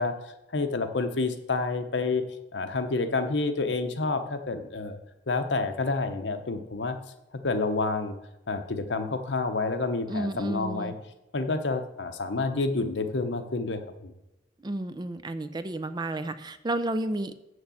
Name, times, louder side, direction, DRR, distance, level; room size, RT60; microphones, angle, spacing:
voice 1, 0.0-2.2 2.5-5.0 5.3-7.0 7.4-8.2 8.5-10.9 11.3-14.1, left 3 dB, 75° left, 8 dB, 0.8 m, -29 dB
voice 2, 10.1-10.9 14.6-17.3, right 1 dB, 25° right, 11 dB, 0.5 m, -31 dB
7.0 x 6.5 x 7.1 m, 0.94 s
head